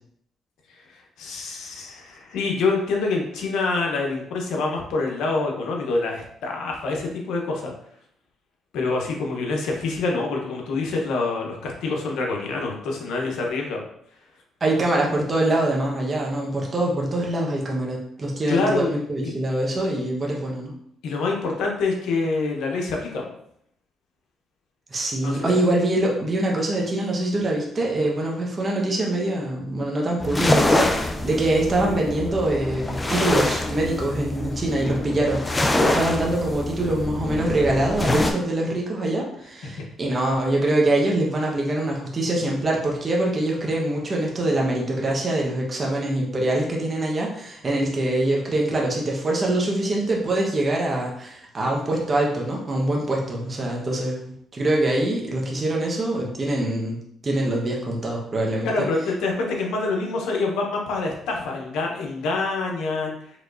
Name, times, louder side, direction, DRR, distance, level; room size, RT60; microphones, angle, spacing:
voice 1, 0.7-7.7 8.7-13.8 18.5-18.9 19.2-19.3 21.0-23.2 25.2-25.5 58.6-63.1, left 3 dB, 85° left, 0 dB, 1.0 m, -26 dB
voice 2, 14.6-20.7 24.9-35.4 35.8-54.2 54.5-57.0 57.2-58.7, right 1 dB, 35° right, -2 dB, 1.1 m, -24 dB
sound 1, 30.2-38.3, left 1 dB, 20° left, 0.6 m, -25 dB
5.0 x 3.1 x 2.6 m, 0.69 s
cardioid pair, 90°, 0 cm